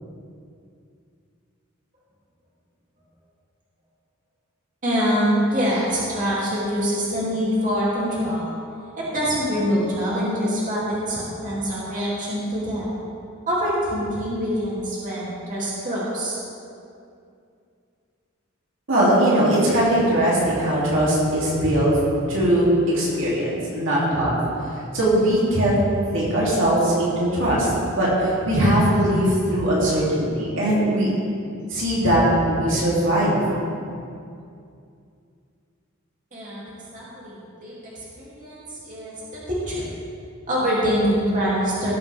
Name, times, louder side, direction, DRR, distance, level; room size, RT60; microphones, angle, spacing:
voice 1, 4.8-8.5 9.0-13.0 13.5-16.4 36.3-36.6 36.9-37.8 38.2-39.1 39.7-39.8 40.5-41.9, equal, 40° right, -8 dB, 2.9 m, -24 dB
voice 2, 18.9-22.0 22.3-24.4 24.9-25.8 26.1-31.1 31.7-33.4, right 1 dB, 65° right, -7 dB, 3.0 m, -20 dB
18.0 x 7.8 x 3.5 m, 2.5 s
head